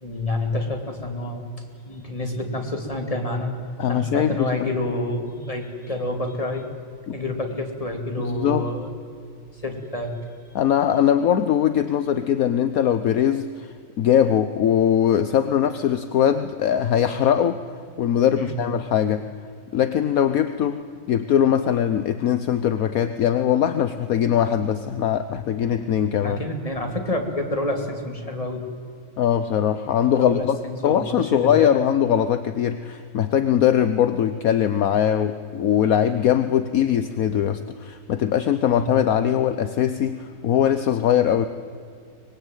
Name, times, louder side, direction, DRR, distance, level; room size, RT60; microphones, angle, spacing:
voice 1, 0.0-1.4 1.8-3.5 3.9-6.7 7.1-8.9 9.6-10.2 18.3-18.6 26.2-28.6 30.2-31.7 38.7-38.9, left 1 dB, 15° left, 3 dB, 2.7 m, -28 dB
voice 2, 3.8-4.7 7.1-7.2 8.2-8.7 10.5-17.6 18.0-19.3 19.7-20.8 21.1-26.4 29.2-30.6 30.8-41.5, left 9 dB, 60° left, 10 dB, 1.0 m, -21 dB
24.0 x 20.5 x 9.2 m, 2.3 s
omnidirectional pair, 2.2 m